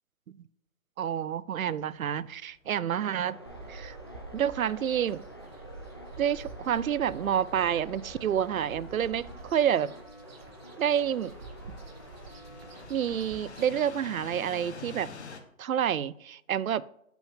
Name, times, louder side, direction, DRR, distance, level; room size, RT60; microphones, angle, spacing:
voice 1, 1.0-3.4 3.7-4.0 4.3-5.2 6.2-9.9 10.8-11.3 12.9-15.1 15.6-16.8, right 9 dB, 85° right, 19 dB, 0.5 m, -28 dB
sound 1, 1.7-15.4, left 4 dB, 55° left, 1.2 m, -50 dB
sound 2, 2.9-12.9, equal, 20° left, 0.5 m, -48 dB
sound 3, 3.5-14.0, right 3 dB, 45° right, 1.0 m, -48 dB
7.2 x 6.0 x 3.5 m, 0.75 s
hypercardioid pair, 160°, 40 cm